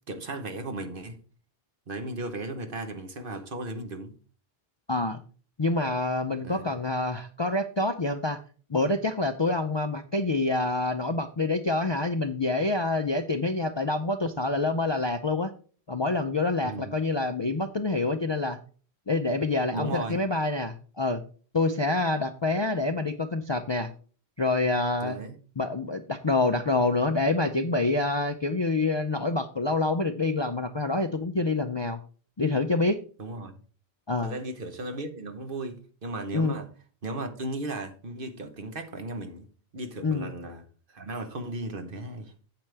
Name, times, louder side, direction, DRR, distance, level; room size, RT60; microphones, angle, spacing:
voice 1, 0.1-1.2 1.9-4.1 6.4-6.6 16.6-16.9 19.7-20.2 25.0-25.3 33.2-33.5 34.2-36.7 37.0-39.5 39.7-42.3, right 2 dB, 55° right, 1.3 m, -36 dB
voice 2, 4.9-5.2 5.6-8.4 8.7-15.5 15.9-18.6 19.1-21.2 21.5-23.9 24.4-25.2 25.6-32.0 32.4-33.0 34.1-34.3 36.3-36.6 40.0-40.3, left 2 dB, 35° left, 0.5 m, -27 dB
8.6 x 7.9 x 3.4 m
omnidirectional pair, 1.1 m